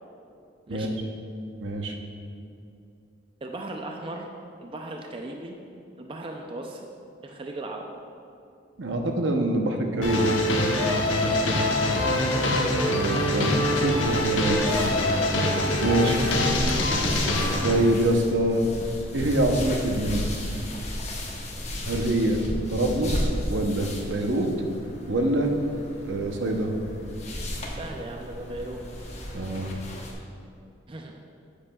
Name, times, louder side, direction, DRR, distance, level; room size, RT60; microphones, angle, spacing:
voice 1, 0.7-1.0 3.4-4.3 4.6-5.6 6.0-6.8 7.2-7.8 11.9-12.4 13.3-13.5 27.7-28.8 30.9-31.1, right 2 dB, 30° right, 2 dB, 0.5 m, -37 dB
voice 2, 1.6-1.9 8.8-10.3 12.8-14.6 15.8-16.2 17.6-18.7 19.1-20.3 21.9-22.4 22.7-24.5 25.1-25.5 26.1-26.7 29.3-29.7, right 1 dB, 70° right, 3 dB, 0.8 m, -25 dB
sound 1, 10.0-17.8, left 1 dB, 85° left, 1.0 m, -24 dB
sound 2, 13.4-30.1, equal, 35° left, 1.0 m, -34 dB
10.5 x 8.4 x 2.3 m, 2.6 s
head